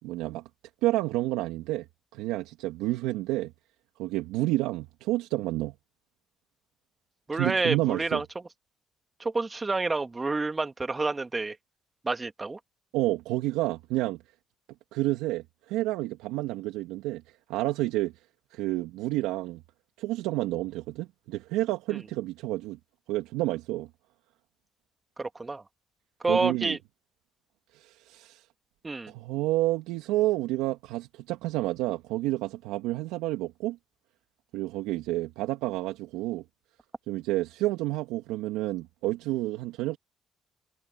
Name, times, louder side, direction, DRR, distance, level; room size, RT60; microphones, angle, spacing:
voice 1, 0.0-0.4 0.8-1.9 2.1-3.5 4.0-5.7 7.3-8.2 12.9-14.2 14.9-17.2 17.5-18.1 18.5-19.6 20.0-22.8 23.1-23.9 26.3-26.8 27.7-28.4 29.1-33.8 34.5-36.4 37.1-40.0, right 17 dB, 85° right, 2.5 m, -29 dB
voice 2, 7.3-8.2 9.2-11.6 12.0-12.6 21.9-22.0 25.2-25.6 26.2-26.8 28.8-29.1, right 3 dB, 25° right, 2.2 m, -28 dB
supercardioid pair, 55°, 0 cm